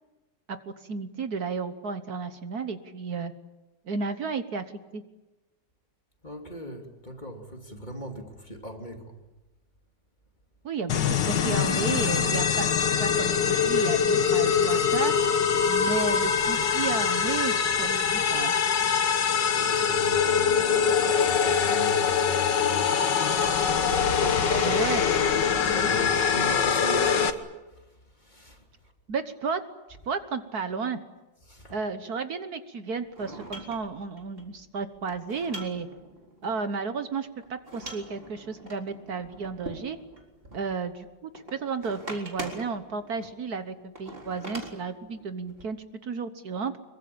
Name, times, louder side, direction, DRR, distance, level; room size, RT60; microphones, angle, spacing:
voice 1, 0.5-3.3 3.8-4.6 4.9-5.0 10.6-15.1 15.6-18.5 24.6-25.0 29.1-29.6 30.0-31.0 31.7-35.9 36.4-40.0 40.5-45.8 46.0-46.7, right 5 dB, 60° right, 1.7 m, -33 dB
voice 2, 6.2-9.2 19.5-25.3 25.6-27.4 27.7-27.9 28.2-28.6 31.5-31.8, equal, 25° left, 3.0 m, -39 dB
sound 1, 10.9-27.3, left 7 dB, 75° left, 2.0 m, -23 dB
sound 2, 33.0-36.5 37.4-41.0 41.3-43.3 43.9-45.7, right 1 dB, 30° right, 4.2 m, -43 dB
25.5 x 23.0 x 8.7 m
omnidirectional pair, 1.9 m